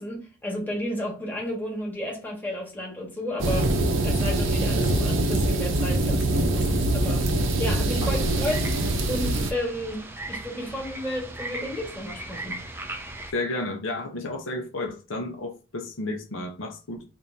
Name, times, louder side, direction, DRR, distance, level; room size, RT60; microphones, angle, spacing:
voice 1, 0.0-7.3 7.6-8.7 9.1-10.0 10.3-12.6, equal, 10° left, 1.5 m, -32 dB
sound 1, 3.4-9.5, right 1 dB, 75° right, 0.7 m, -24 dB
sound 2, 8.1-13.3, right 2 dB, 10° right, 0.5 m, -38 dB
voice 2, 13.3-17.0, left 2 dB, 80° left, 0.8 m, -32 dB
4.7 x 2.7 x 2.7 m
head